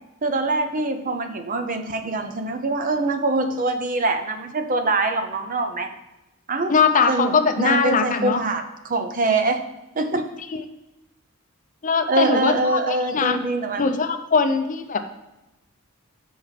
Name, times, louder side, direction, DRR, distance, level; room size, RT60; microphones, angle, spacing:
voice 1, 0.2-5.9 6.5-6.7 7.1-9.6 10.0-10.2 12.1-13.8, right 2 dB, 40° right, 7 dB, 0.6 m, -24 dB
voice 2, 6.7-8.4 11.8-13.4 13.8-15.0, left 5 dB, 35° left, 7 dB, 0.5 m, -21 dB
7.5 x 4.2 x 5.8 m, 0.97 s
head